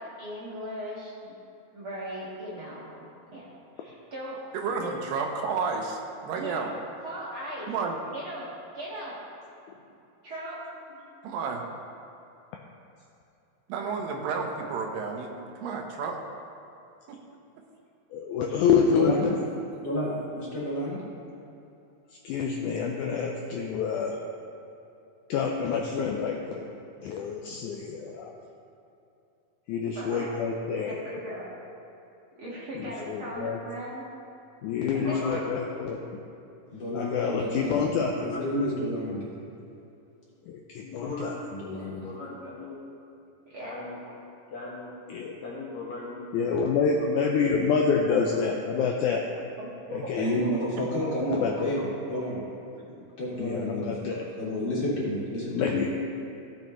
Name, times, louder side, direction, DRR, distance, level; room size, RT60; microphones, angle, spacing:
voice 1, 0.0-1.3 1.7-3.0 3.3-3.4 3.8-4.4 4.8-5.0 6.3-6.7 7.0-7.7 8.1-8.5 8.7-9.1 10.2-10.6 29.9-30.3 30.9-31.5 32.4-34.0 34.9-35.4 38.1-38.2 43.5-43.7 49.6-50.1 51.0-51.2, right 1 dB, 45° right, -8 dB, 1.9 m, -38 dB
voice 2, 4.5-6.7 7.7-8.0 11.2-11.6 13.7-16.2 17.1-17.2, right 5 dB, 80° right, 2 dB, 2.6 m, -31 dB
voice 3, 18.1-19.3 22.2-24.2 25.3-26.7 27.0-28.4 29.7-30.9 32.8-33.6 34.6-36.0 36.9-38.1 38.4-38.5 40.5-41.3 45.1-45.4 46.3-49.2 49.9-50.3 51.4-51.7 53.4-54.2 55.5-55.9, left 6 dB, 80° left, 1 dB, 1.8 m, -27 dB
voice 4, 18.9-19.3 19.8-21.0 36.7-37.8 38.3-39.3 41.6-42.0 50.1-52.4 52.7-55.9, equal, 35° left, -8 dB, 2.8 m, -30 dB
voice 5, 34.9-35.9 38.0-38.6 40.8-41.5 41.9-42.8 43.6-44.0 44.5-44.9 45.4-47.8 48.2-48.3, left 2 dB, 60° left, -5 dB, 2.7 m, -40 dB
16.5 x 7.0 x 3.1 m, 2.7 s
omnidirectional pair, 4.1 m